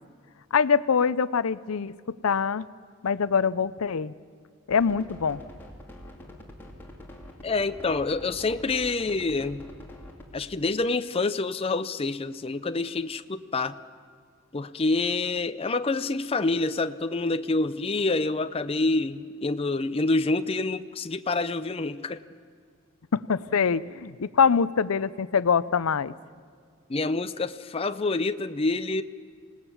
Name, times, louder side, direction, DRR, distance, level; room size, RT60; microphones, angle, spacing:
voice 1, 0.5-1.9 2.2-2.7 3.0-4.1 4.7-5.4 23.1-26.1, left 6 dB, 75° left, 17 dB, 0.5 m, -24 dB
sound 1, 4.7-10.3, left 1 dB, 10° left, 2.7 m, -45 dB
voice 2, 7.4-9.7 10.3-13.8 14.5-22.2 26.9-29.0, left 3 dB, 25° left, 11 dB, 0.5 m, -27 dB
26.5 x 18.5 x 7.2 m, 2.1 s
head